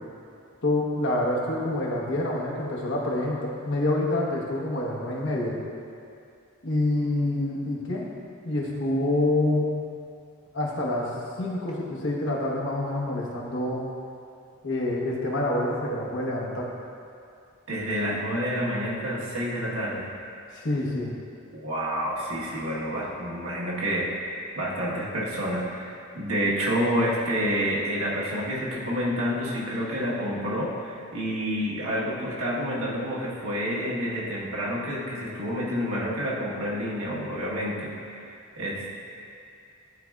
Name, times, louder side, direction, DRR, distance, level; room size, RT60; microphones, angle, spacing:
voice 1, 0.6-5.6 6.6-8.1 8.4-9.7 10.5-11.1 11.4-13.8 14.6-16.7 20.5-21.1, left 1 dB, 60° left, -3 dB, 1.1 m, -27 dB
voice 2, 17.7-20.1 21.5-39.0, equal, 80° right, -5 dB, 1.3 m, -29 dB
11.5 x 4.2 x 2.3 m, 2.4 s
head